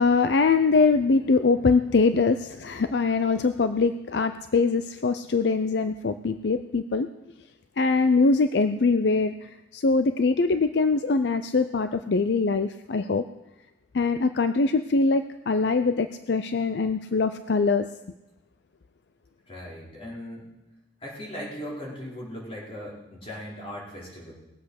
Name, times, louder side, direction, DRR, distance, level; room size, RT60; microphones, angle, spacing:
voice 1, 0.0-7.1 7.8-13.2 13.9-17.9, left 4 dB, 70° left, 10 dB, 0.5 m, -23 dB
voice 2, 19.5-20.5 21.0-24.3, equal, 35° left, -5 dB, 4.8 m, -38 dB
20.0 x 8.0 x 6.5 m, 0.98 s
head